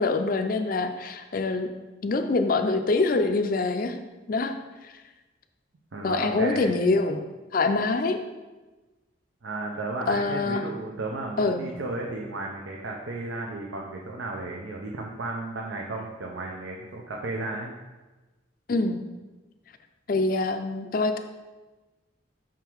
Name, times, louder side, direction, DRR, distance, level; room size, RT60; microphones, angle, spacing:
voice 1, 0.0-1.7 2.0-4.0 4.3-4.5 4.8-4.9 6.0-7.2 7.5-8.2 10.1-10.6 11.4-11.6 18.7-19.0 20.1-21.2, left 3 dB, 45° left, 7 dB, 0.4 m, -25 dB
voice 2, 5.9-6.7 9.4-17.7, right 2 dB, 80° right, -1 dB, 0.6 m, -33 dB
5.9 x 3.8 x 4.5 m, 1.2 s
head